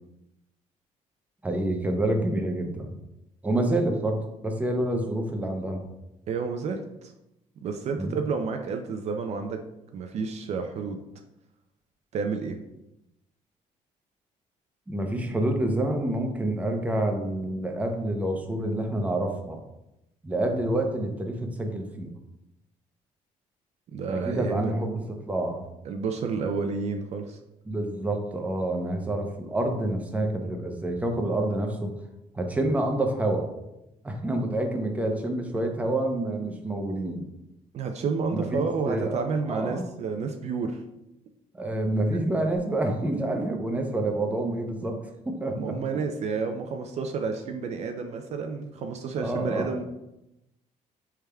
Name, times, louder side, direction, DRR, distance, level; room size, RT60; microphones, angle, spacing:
voice 1, 1.4-3.0 3.4-5.9 8.0-8.2 14.9-19.6 20.2-22.1 24.1-24.9 25.3-25.6 27.7-31.9 32.3-33.5 34.0-37.2 38.3-39.1 39.5-39.8 41.5-45.6 49.2-49.7, right 1 dB, 10° right, 3 dB, 0.6 m, -28 dB
voice 2, 6.3-7.1 7.6-9.6 9.9-11.0 12.1-12.6 23.9-24.8 25.9-27.4 37.7-40.8 45.4-49.9, right 5 dB, 55° right, 5 dB, 0.4 m, -30 dB
4.6 x 3.4 x 2.2 m, 0.89 s
cardioid pair, 105°, 13 cm